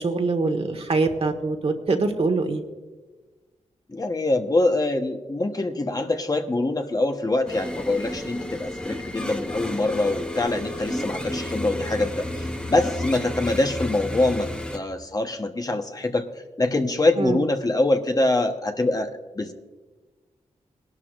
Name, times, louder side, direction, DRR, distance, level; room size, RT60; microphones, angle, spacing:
voice 1, 0.0-2.6 17.2-17.4, right 3 dB, 55° right, 4 dB, 1.5 m, -24 dB
voice 2, 3.9-16.3 16.6-19.5, left 2 dB, 30° left, 5 dB, 1.1 m, -24 dB
sound 1, 7.5-14.8, left 1 dB, 5° left, 0.9 m, -32 dB
20.5 x 12.0 x 2.5 m, 1.3 s
cardioid pair, 60°, 12 cm